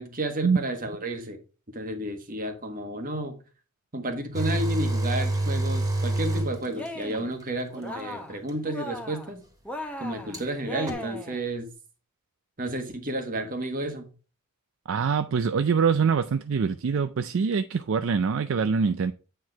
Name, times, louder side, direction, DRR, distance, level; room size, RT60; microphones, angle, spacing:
voice 1, 0.0-1.4 1.7-3.4 3.9-9.4 10.0-11.7 12.6-14.1, right 1 dB, 40° right, 1.5 m, -32 dB
sound 1, 4.3-7.2 8.5-8.6 10.3-10.4 10.9-11.0, right 2 dB, 15° right, 1.8 m, -27 dB
Cheering, 6.7-7.3 7.7-8.4 8.6-9.3 9.6-11.4, equal, 5° left, 0.9 m, -37 dB
voice 2, 14.9-19.1, right 5 dB, 60° right, 0.4 m, -24 dB
8.5 x 4.5 x 4.6 m
head